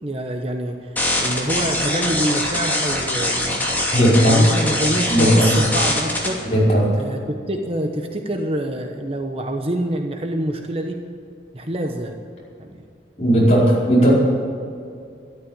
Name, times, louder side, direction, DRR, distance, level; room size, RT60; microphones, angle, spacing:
voice 1, 0.0-3.7 4.1-6.4 6.9-11.0 11.5-12.2 12.6-12.7, right 1 dB, 30° right, 3 dB, 1.0 m, -26 dB
sound 1, 1.0-6.3, left 1 dB, 10° left, 2.7 m, -22 dB
voice 2, 3.9-4.5 5.1-5.5 6.4-7.0 13.2-14.1, equal, 35° left, -6 dB, 4.9 m, -16 dB
13.0 x 12.5 x 8.9 m, 2.4 s
head